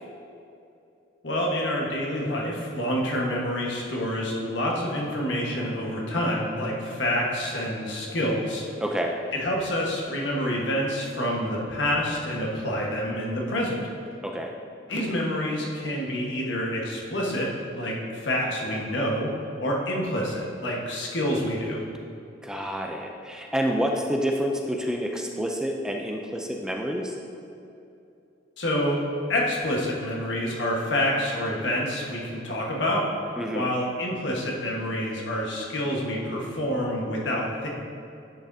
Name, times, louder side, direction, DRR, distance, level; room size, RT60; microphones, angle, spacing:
voice 1, 1.2-8.6 9.3-13.9 14.9-21.8 28.6-33.1 33.5-37.7, equal, 70° left, -2 dB, 1.4 m, -27 dB
voice 2, 8.8-9.1 14.2-14.5 22.4-27.1 33.4-33.7, equal, 5° right, 1 dB, 0.4 m, -28 dB
10.0 x 6.1 x 2.7 m, 2.7 s
head